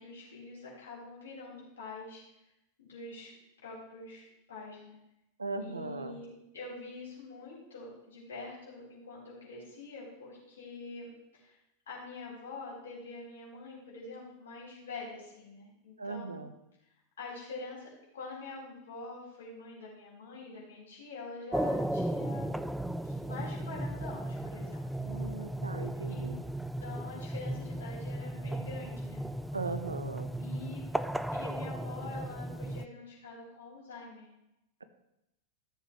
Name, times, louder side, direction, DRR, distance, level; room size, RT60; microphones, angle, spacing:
voice 1, 0.0-2.2 2.8-3.3 3.6-5.0 5.6-11.6 11.9-16.4 17.2-22.5 23.0-24.9 26.1-26.3 26.8-29.2 30.4-30.8 31.3-34.3, left 3 dB, 65° left, -5 dB, 4.2 m, -45 dB
voice 2, 5.4-6.2 16.0-16.5 25.0-26.4 29.5-30.3, right 3 dB, 80° right, 10 dB, 0.7 m, -38 dB
sound 1, 21.5-32.9, right 1 dB, 5° right, 0.3 m, -35 dB
13.5 x 7.1 x 3.1 m, 0.88 s
figure-of-eight pair, 90°, 0 cm